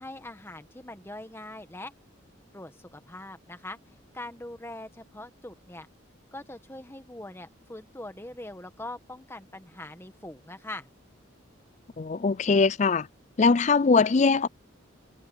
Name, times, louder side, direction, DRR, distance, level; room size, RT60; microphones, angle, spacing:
voice 1, 0.0-1.9 2.5-3.8 4.1-5.9 6.3-10.9, left 1 dB, 10° left, 1.5 m, -42 dB
voice 2, 12.0-13.1 13.4-14.5, left 4 dB, 35° left, 0.4 m, -21 dB
head